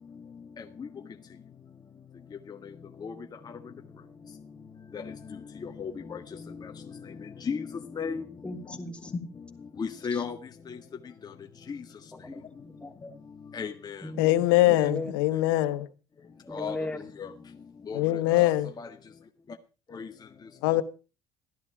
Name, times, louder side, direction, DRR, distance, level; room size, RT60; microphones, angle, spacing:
voice 1, 5.6-6.2 6.5-6.7 7.5-7.6 8.0-8.2 9.8-10.4 10.7-10.8 11.7-11.8 13.5-14.0 16.5-16.7 17.2-17.3 17.9-18.0 18.3-18.9 19.9-20.1, left 6 dB, 35° left, 1.6 m, -34 dB
voice 2, 8.4-9.1 10.1-10.2 12.1-12.9 14.0-15.1 16.5-17.1, left 1 dB, 10° left, 3.0 m, -38 dB
voice 3, 14.2-15.9 17.9-18.7 20.6-20.8, left 16 dB, 90° left, 1.0 m, -23 dB
14.0 x 11.0 x 4.8 m
supercardioid pair, 75°, 11 cm